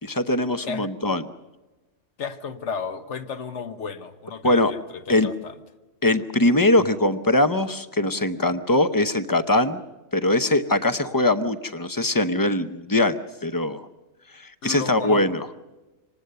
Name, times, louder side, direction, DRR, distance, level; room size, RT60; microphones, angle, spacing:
voice 1, 0.0-1.2 4.4-4.7 5.1-5.3 6.0-9.8 10.1-13.8 14.4-15.5, left 1 dB, 20° left, 10 dB, 0.7 m, -21 dB
voice 2, 2.2-5.6 14.6-15.3, left 5 dB, 65° left, 9 dB, 1.4 m, -33 dB
25.5 x 19.5 x 6.7 m, 1.1 s
omnidirectional pair, 1.3 m